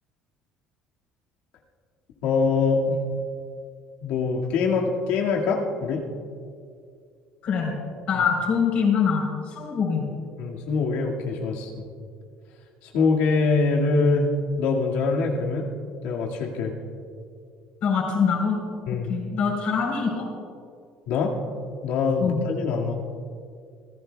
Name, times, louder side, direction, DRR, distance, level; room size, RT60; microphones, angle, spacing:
voice 1, 2.2-3.0 4.0-6.0 10.4-11.8 12.8-14.3 14.6-15.6 16.0-16.7 18.9-19.1 21.1-21.3 21.8-23.0, left 4 dB, 75° left, -1 dB, 2.0 m, -24 dB
voice 2, 7.4-7.8 8.1-10.0 17.8-18.6 19.1-20.3 22.2-22.4, left 6 dB, 45° left, 0 dB, 3.8 m, -24 dB
26.5 x 15.0 x 2.3 m, 2.3 s
cardioid pair, 180°, 3 cm